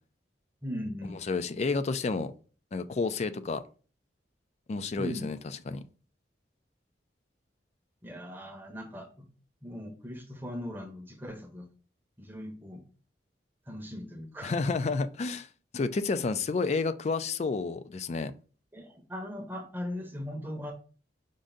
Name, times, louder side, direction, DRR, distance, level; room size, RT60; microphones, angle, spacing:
voice 1, 0.6-1.3 5.0-5.3 8.0-9.3 9.6-11.7 12.2-12.8 13.7-14.5 18.7-20.7, equal, 10° right, 0.7 m, -39 dB
voice 2, 1.3-2.3 2.7-3.6 4.7-5.8 14.4-15.5 15.7-18.3, left 4 dB, 35° left, 0.3 m, -30 dB
5.2 x 2.6 x 3.7 m
head